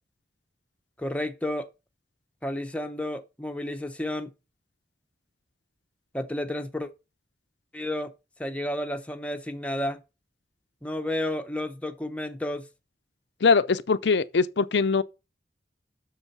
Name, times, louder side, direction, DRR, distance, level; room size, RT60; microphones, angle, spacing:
voice 1, 1.0-1.7 2.4-4.3 6.1-6.9 7.7-8.1 8.4-10.0 10.8-12.7, left 1 dB, 5° left, 0.8 m, -31 dB
voice 2, 13.4-15.0, left 4 dB, 90° left, 0.6 m, -22 dB
7.1 x 6.6 x 6.7 m
head